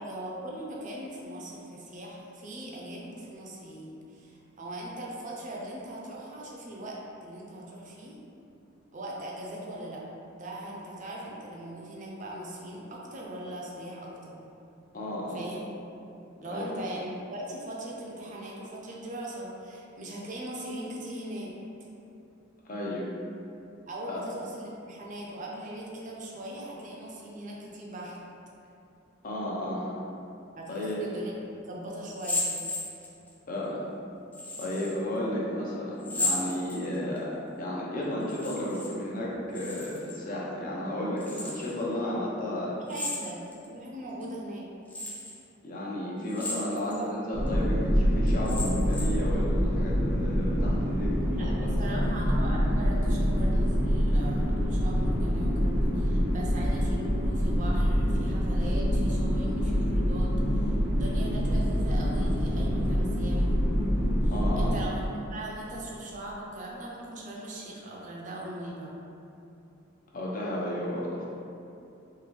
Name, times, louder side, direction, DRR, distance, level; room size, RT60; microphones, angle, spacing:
voice 1, 0.0-8.2 8.9-10.0 10.3-14.4 15.3-15.8 16.4-21.5 23.9-28.2 30.6-31.4 31.6-32.5 42.6-44.7 51.3-63.5 64.2-69.0, right 1 dB, 40° right, -3 dB, 0.6 m, -40 dB
voice 2, 14.9-15.4 16.5-16.7 22.6-23.1 24.1-24.2 29.2-29.9 30.7-31.0 33.5-33.8 34.6-37.3 37.6-42.7 45.6-51.6 64.3-64.7 70.1-71.3, left 1 dB, 45° left, -5 dB, 0.7 m, -33 dB
sound 1, 32.1-33.3 34.3-34.9 36.0-37.2 38.2-38.9 39.2-40.2 41.2-41.8 42.9-43.7 44.2-44.3 44.9-45.4 46.2-47.0 47.5-47.6 48.3-49.3, left 2 dB, 10° left, 0.4 m, -34 dB
sound 2, 47.3-64.7, equal, 85° right, 0.9 m, -26 dB
3.7 x 2.6 x 3.1 m, 2.7 s
head